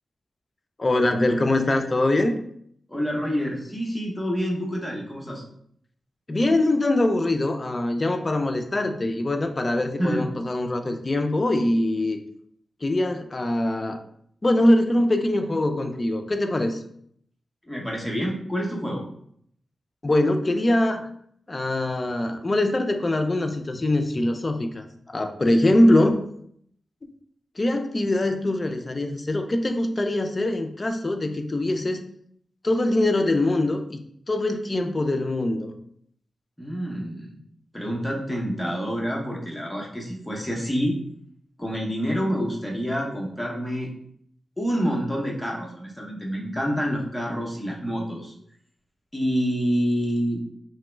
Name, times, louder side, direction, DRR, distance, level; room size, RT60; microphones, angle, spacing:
voice 1, 0.8-2.4 6.3-12.2 12.8-14.0 14.4-16.8 20.0-21.1 21.5-26.2 27.6-32.0 32.6-34.0 34.3-35.7, left 1 dB, 30° left, 6 dB, 0.3 m, -23 dB
voice 2, 2.9-5.4 10.0-10.2 17.6-19.0 36.6-37.4 37.7-41.0 41.6-43.9 44.6-48.3 49.1-50.4, equal, 5° left, -2 dB, 0.7 m, -27 dB
2.9 x 2.2 x 3.2 m, 0.67 s
wide cardioid pair, 85°, 0 cm